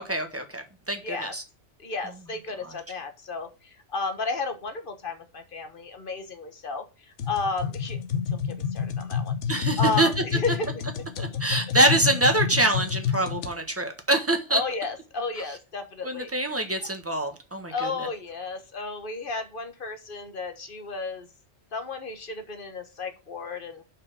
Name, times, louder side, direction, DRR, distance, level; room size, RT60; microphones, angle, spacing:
voice 1, 0.0-1.4 9.5-10.1 11.2-14.6 16.0-18.1, right 1 dB, 10° right, 5 dB, 1.3 m, -25 dB
voice 2, 1.0-1.3 1.8-8.0 8.3-11.0 14.5-16.6 17.7-21.3 21.7-23.8, left 3 dB, 50° left, 7 dB, 1.3 m, -33 dB
sound 1, 7.2-13.5, left 7 dB, 80° left, 1.2 m, -29 dB
5.6 x 5.0 x 6.2 m, 0.31 s
omnidirectional pair, 1.2 m